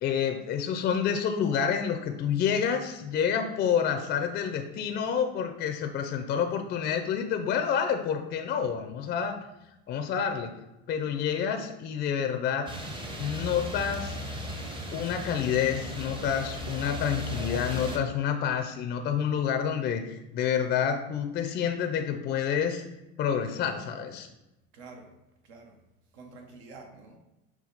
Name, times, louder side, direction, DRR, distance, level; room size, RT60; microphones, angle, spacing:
voice 1, 0.0-9.4 9.9-10.5 10.9-12.7 13.2-14.3 14.9-22.8 23.2-24.3, left 8 dB, 30° left, 6 dB, 0.4 m, -28 dB
sound 1, 12.7-18.0, left 1 dB, 15° right, 0.6 m, -36 dB
voice 2, 24.7-25.1 25.4-25.8 26.1-27.2, right 3 dB, 80° right, 3 dB, 1.1 m, -48 dB
5.9 x 2.3 x 3.9 m, 0.93 s
supercardioid pair, 115°, 32 cm